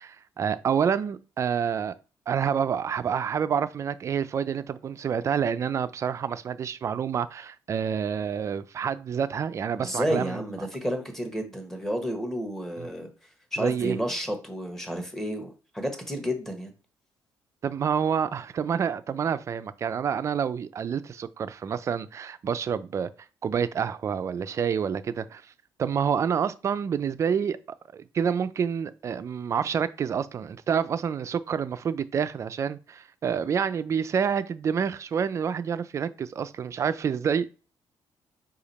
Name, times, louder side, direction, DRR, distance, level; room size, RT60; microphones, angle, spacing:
voice 1, 0.0-1.9 2.3-10.6 12.8-12.9 13.6-14.0 17.6-23.1 23.4-25.4 25.8-27.6 27.9-37.6, right 7 dB, 40° right, 0.4 m, -28 dB
voice 2, 9.8-13.1 13.5-16.7, equal, 5° left, 1.2 m, -31 dB
5.0 x 2.4 x 4.1 m
cardioid pair, 125°, 8 cm